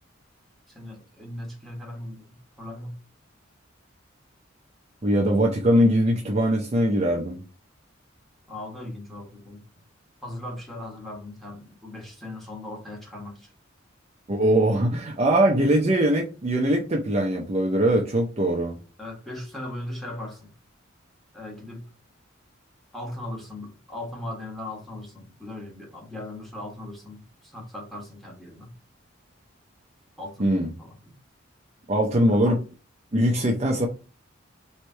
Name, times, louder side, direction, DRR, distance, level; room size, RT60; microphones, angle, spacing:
voice 1, 0.7-3.0 8.5-9.6 10.2-13.5 19.0-20.5 21.3-21.8 22.9-28.7 30.2-31.2 32.3-32.6, left 1 dB, ahead, 1.3 m, -38 dB
voice 2, 5.0-7.4 14.3-18.7 30.4-30.7 31.9-32.6 33.1-33.9, right 1 dB, 30° right, 0.6 m, -21 dB
3.2 x 3.2 x 4.3 m
head